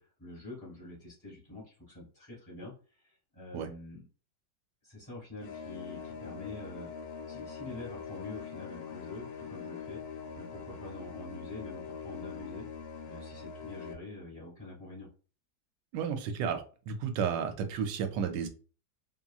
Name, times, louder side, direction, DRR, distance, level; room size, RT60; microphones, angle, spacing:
voice 1, 0.0-4.0 4.8-6.9 7.3-10.0 10.3-12.7 13.0-15.1, left 2 dB, 15° left, -7 dB, 1.0 m, -46 dB
sound 1, 5.4-13.9, left 6 dB, 80° left, 1.3 m, -43 dB
voice 2, 15.9-18.5, right 7 dB, 75° right, 7 dB, 1.1 m, -32 dB
2.9 x 2.8 x 2.3 m, 0.37 s
omnidirectional pair, 2.0 m